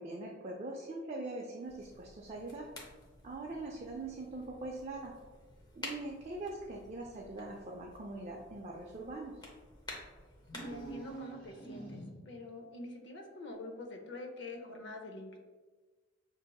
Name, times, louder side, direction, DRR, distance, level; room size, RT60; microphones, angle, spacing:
voice 1, 0.0-2.7 3.2-5.1 5.8-9.4, right 2 dB, 35° right, -1 dB, 0.4 m, -42 dB
sound 1, 1.6-10.9, left 1 dB, 20° left, 0.7 m, -51 dB
sound 2, 10.4-12.4, right 3 dB, 45° left, 1.1 m, -46 dB
voice 2, 10.6-12.0 12.3-15.4, left 2 dB, 65° left, 3 dB, 0.6 m, -45 dB
6.4 x 2.6 x 2.3 m, 1.4 s
head